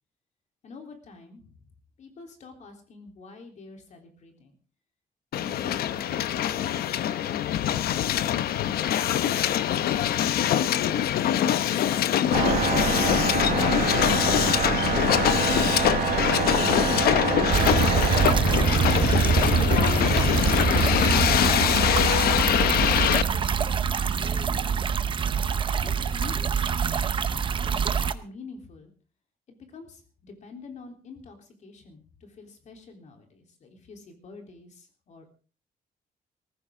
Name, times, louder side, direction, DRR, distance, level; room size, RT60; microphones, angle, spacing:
voice 1, 0.6-1.7 2.0-4.6 5.3-8.4 24.1-24.9 25.8-26.8 27.6-28.9 29.5-35.2, left 3 dB, 50° left, 4 dB, 3.5 m, -47 dB
Hiss, 5.3-23.2, left 11 dB, 85° left, 0.9 m, -24 dB
sound 1, 12.3-18.4, right 8 dB, 60° right, 1.3 m, -27 dB
sound 2, 17.5-28.1, right 6 dB, 35° right, 0.8 m, -24 dB
19.5 x 15.0 x 3.7 m, 0.37 s
cardioid pair, 165°, 15 cm